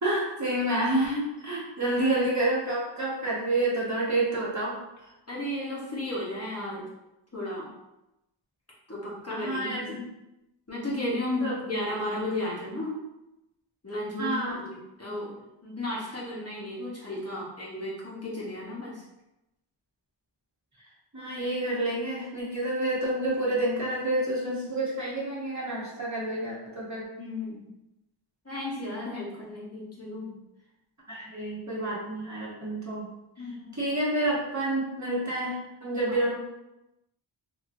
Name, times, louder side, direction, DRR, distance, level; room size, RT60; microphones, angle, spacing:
voice 1, 0.0-4.8 9.3-10.0 11.4-11.5 14.2-14.6 21.1-27.1 31.1-33.0 33.8-36.3, right 1 dB, 35° right, -7 dB, 1.0 m, -29 dB
voice 2, 5.3-6.9 7.3-7.7 8.9-10.1 10.7-13.0 13.8-19.0 27.2-27.7 28.4-30.4 33.4-33.9 36.1-36.2, left 1 dB, 30° left, -6 dB, 1.0 m, -34 dB
3.0 x 2.7 x 2.6 m, 0.92 s
wide cardioid pair, 40°, 46 cm